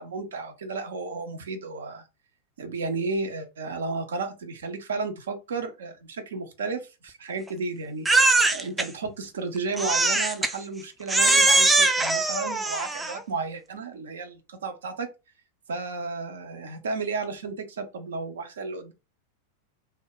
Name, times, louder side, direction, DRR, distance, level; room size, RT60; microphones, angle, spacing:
voice 1, 0.0-2.0 2.6-8.1 8.5-15.1 15.7-18.9, right 4 dB, 65° right, 0.6 m, -33 dB
Crying sobbing, 8.1-8.9 9.8-10.5 11.1-13.2, right 2 dB, 10° right, 0.3 m, -21 dB
2.2 x 2.0 x 3.8 m
figure-of-eight pair, 90°, 0 cm